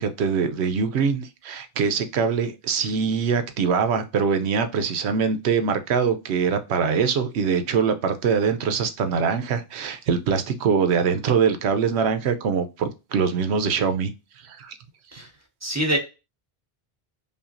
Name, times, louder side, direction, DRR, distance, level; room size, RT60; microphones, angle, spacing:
voice 1, 0.0-14.1 14.4-14.7, right 6 dB, 90° right, 9 dB, 0.9 m, -23 dB
voice 2, 15.6-16.0, equal, 15° right, 0 dB, 1.0 m, -24 dB
5.5 x 2.3 x 2.5 m, 0.27 s
omnidirectional pair, 1.1 m